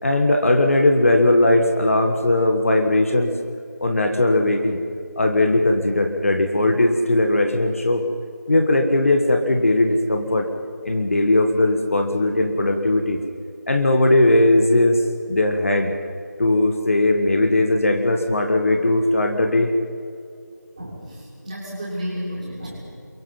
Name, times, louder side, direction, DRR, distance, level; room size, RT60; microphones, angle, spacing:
voice 1, 0.0-3.3 3.8-4.8 5.2-8.0 8.5-10.5 10.8-13.2 13.7-15.0 15.3-15.9 16.4-19.7, left 1 dB, 45° left, 4 dB, 1.7 m, -18 dB
voice 2, 20.8-22.8, equal, 20° right, -6 dB, 6.1 m, -32 dB
29.0 x 23.0 x 5.5 m, 2.5 s
figure-of-eight pair, 170°, 10 cm